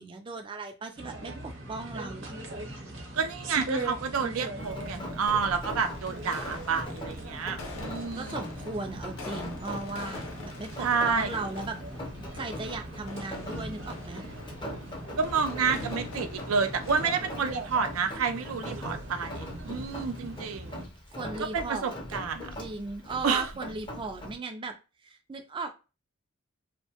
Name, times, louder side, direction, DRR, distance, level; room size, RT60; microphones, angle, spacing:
voice 1, 0.0-2.3 8.1-11.8 12.3-14.2 21.1-22.0 22.6-24.7 25.0-25.7, right 3 dB, 25° right, 0.4 m, -37 dB
sound 1, 1.0-20.9, right 1 dB, 65° right, 0.8 m, -40 dB
voice 2, 3.1-8.4 10.8-11.3 15.2-20.8 21.4-22.5 23.2-23.5, right 5 dB, 85° right, 0.5 m, -29 dB
Rain, 4.6-24.4, left 1 dB, 25° left, 0.6 m, -42 dB
sound 2, 5.9-17.5, left 3 dB, 90° left, 0.6 m, -44 dB
2.7 x 2.1 x 2.8 m
head